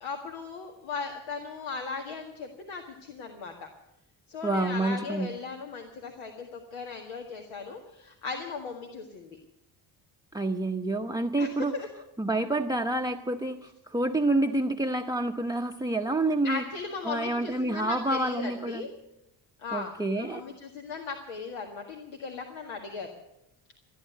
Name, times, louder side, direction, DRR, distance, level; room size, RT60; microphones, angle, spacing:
voice 1, 0.0-3.7 4.3-9.4 11.4-11.9 16.4-18.9 19.6-23.1, left 4 dB, 75° left, 3 dB, 1.9 m, -37 dB
voice 2, 4.4-5.3 10.3-11.8 12.2-16.6 17.0-18.8 19.7-20.4, right 2 dB, 10° right, 3 dB, 0.8 m, -28 dB
14.5 x 10.0 x 9.2 m, 0.84 s
supercardioid pair, 75°, 47 cm